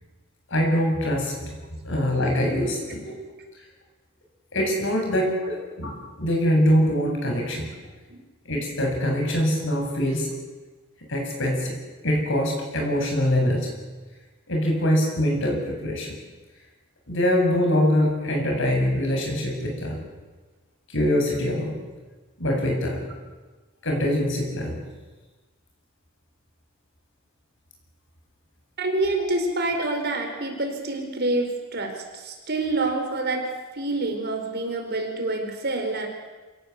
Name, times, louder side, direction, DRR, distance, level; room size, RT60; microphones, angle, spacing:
voice 1, 0.5-1.3 1.8-3.1 4.5-5.9 6.2-7.7 8.4-10.3 11.1-11.8 12.0-13.7 14.5-16.1 17.1-20.0 20.9-21.7 22.4-23.0 23.8-24.8, equal, 65° left, 1 dB, 7.8 m, -23 dB
voice 2, 28.8-33.4 33.7-36.1, right 2 dB, 50° right, 4 dB, 4.6 m, -27 dB
27.0 x 17.5 x 8.2 m, 1.3 s
head